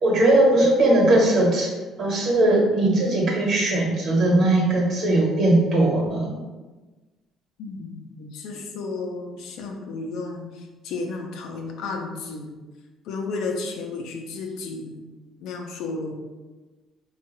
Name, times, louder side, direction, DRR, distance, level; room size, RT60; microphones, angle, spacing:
voice 1, 0.0-1.7 2.0-6.3, right 1 dB, 45° right, -2 dB, 1.1 m, -19 dB
voice 2, 7.6-12.6 13.0-15.0 15.4-16.1, left 3 dB, 75° left, 2 dB, 0.6 m, -33 dB
4.5 x 2.4 x 3.0 m, 1.2 s
cardioid pair, 150°, 0 cm